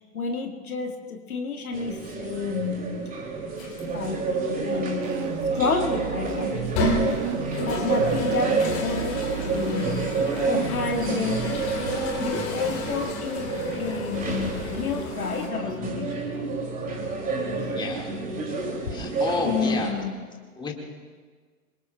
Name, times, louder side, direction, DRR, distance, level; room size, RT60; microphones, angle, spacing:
voice 1, 0.1-3.1 3.9-6.5 7.7-10.0 10.4-11.7 12.2-16.2 18.9-19.0 19.4-20.2, left 5 dB, 65° left, 3 dB, 1.8 m, -30 dB
sound 1, 1.7-19.9, right 3 dB, 20° right, 2.6 m, -29 dB
sound 2, 3.6-4.1 4.8-4.9 6.5-15.5, left 2 dB, 35° left, 3.3 m, -33 dB
sound 3, 5.0-11.6, right 7 dB, 45° right, 1.5 m, -33 dB
voice 2, 17.7-18.1 18.9-19.9 20.6-20.7, left 4 dB, 10° left, 2 dB, 1.9 m, -30 dB
26.0 x 24.0 x 2.3 m, 1.5 s
figure-of-eight pair, 100°, 46 cm